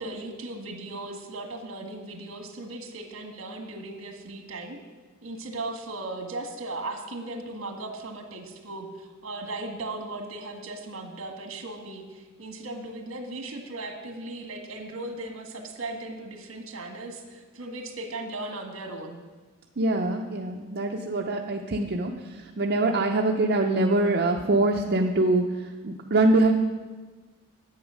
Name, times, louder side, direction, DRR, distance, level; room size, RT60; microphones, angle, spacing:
voice 1, 0.0-4.8 5.2-19.2, right 2 dB, 65° right, 3 dB, 1.6 m, -37 dB
voice 2, 19.8-26.5, right 2 dB, 50° right, 1 dB, 0.6 m, -24 dB
10.5 x 8.1 x 6.3 m, 1.3 s
head